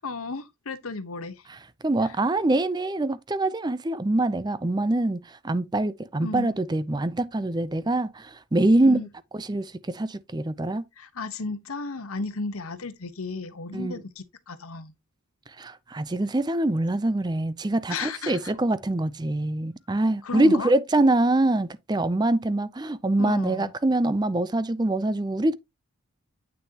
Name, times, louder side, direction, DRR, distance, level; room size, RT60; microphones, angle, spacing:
voice 1, 0.0-1.5 2.0-2.2 6.2-6.5 8.8-9.1 11.0-14.9 17.9-18.6 20.2-20.7 23.2-23.7, left 3 dB, 90° left, 1.1 m, -34 dB
voice 2, 1.8-9.1 9.3-10.9 13.7-14.0 15.6-25.5, right 2 dB, 20° right, 0.5 m, -24 dB
9.1 x 6.2 x 2.9 m
head